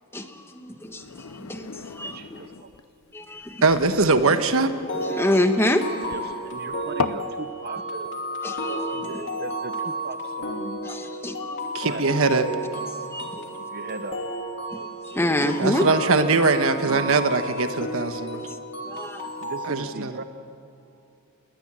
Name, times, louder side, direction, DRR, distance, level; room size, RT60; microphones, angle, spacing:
voice 1, 0.1-2.4 3.1-3.6 4.9-6.1 8.4-9.3 10.8-11.8 12.9-13.5 14.7-15.8 18.3-18.6 18.8-19.3, left 1 dB, 10° left, 7 dB, 1.2 m, -27 dB
sound 1, 0.8-7.3, left 5 dB, 70° left, 0.7 m, -36 dB
voice 2, 2.0-2.7 6.1-8.2 8.9-10.8 11.8-12.0 13.6-14.2 15.4-15.6 15.8-15.9 16.2-16.4 16.8-17.1 19.4-20.2, right 3 dB, 45° right, 9 dB, 0.7 m, -37 dB
voice 3, 3.6-4.7 11.7-12.4 15.6-18.5 19.7-20.1, right 3 dB, 65° right, 9 dB, 1.2 m, -21 dB
sound 2, 4.9-19.7, right 1 dB, 55° left, 3.0 m, -32 dB
20.5 x 19.5 x 7.6 m, 2.8 s
head